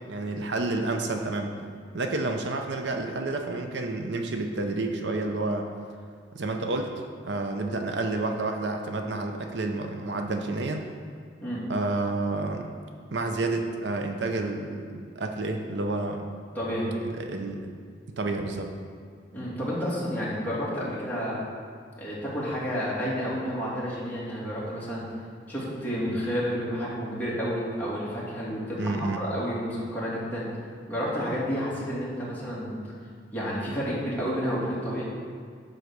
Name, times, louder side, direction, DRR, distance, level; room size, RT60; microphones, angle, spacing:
voice 1, 0.1-1.5 1.9-5.7 6.3-6.9 7.2-10.8 11.7-12.7 13.1-16.3 17.2-17.7 18.2-18.7 28.8-29.2, right 2 dB, 70° right, 4 dB, 0.7 m, -29 dB
voice 2, 16.5-17.0 19.3-21.5 22.0-25.1 25.5-30.5 30.9-32.8 33.3-35.0, equal, 10° left, -8 dB, 2.5 m, -30 dB
10.5 x 4.0 x 6.7 m, 2.1 s
head